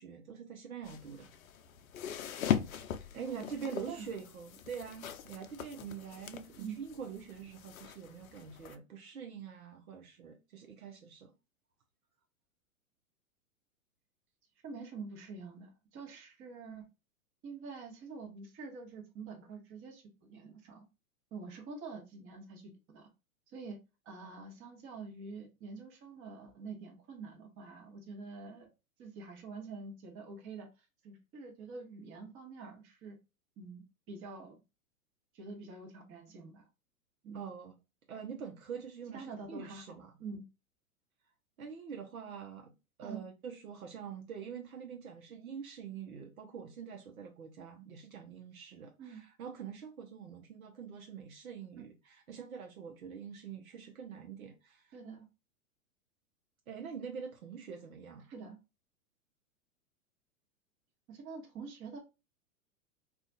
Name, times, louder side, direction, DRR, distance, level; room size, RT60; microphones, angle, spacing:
voice 1, 0.0-1.3 2.7-2.8 3.1-11.3 37.3-37.8 38.1-40.1 41.6-42.7 43.0-55.0 56.7-58.3, right 7 dB, 80° right, 0.8 m, -45 dB
sound 1, 0.8-8.8, left 9 dB, 75° left, 0.6 m, -40 dB
voice 2, 3.1-4.1 6.6-6.8 14.6-16.9 17.4-20.8 21.3-23.1 23.5-23.8 24.0-28.7 29.0-33.2 33.6-34.5 35.3-36.6 37.2-37.4 39.1-39.9 40.2-40.4 43.0-43.2 49.0-49.2 54.9-55.3 58.3-58.6 61.1-62.0, right 4 dB, 30° right, 1.0 m, -46 dB
2.5 x 2.4 x 3.9 m
hypercardioid pair, 105°, 42 cm